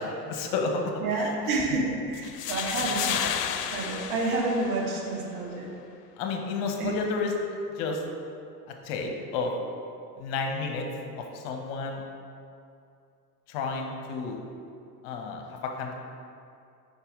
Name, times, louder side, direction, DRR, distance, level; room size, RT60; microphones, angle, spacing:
voice 1, 0.0-0.8 1.2-1.3 6.2-7.3 7.8-8.0 8.8-9.5 10.2-10.9 11.2-12.0 13.5-14.4 15.0-15.9, left 4 dB, 50° left, 2 dB, 1.0 m, -31 dB
voice 2, 1.0-3.2 3.7-5.7 6.8-6.9, right 2 dB, 60° right, -1 dB, 1.5 m, -29 dB
sound 1, 2.1-5.2, left 9 dB, 70° left, 0.6 m, -32 dB
5.3 x 4.6 x 5.1 m, 2.5 s
hypercardioid pair, 80°, 50 cm